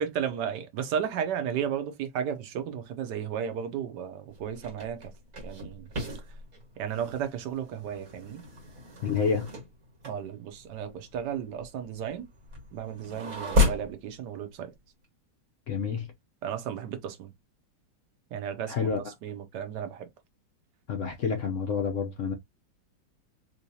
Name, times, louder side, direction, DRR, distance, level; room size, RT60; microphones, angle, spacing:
voice 1, 0.0-5.1 5.4-5.9 6.8-8.4 10.0-12.3 12.7-14.7 16.4-17.3 18.3-18.9 19.2-20.1, right 8 dB, 70° right, 1.2 m, -34 dB
sound 1, 4.3-14.0, left 2 dB, 50° right, 2.0 m, -33 dB
voice 2, 9.0-9.5 15.7-16.1 18.7-19.0 20.9-22.3, left 6 dB, 70° left, 0.7 m, -28 dB
3.8 x 3.0 x 2.7 m
omnidirectional pair, 2.0 m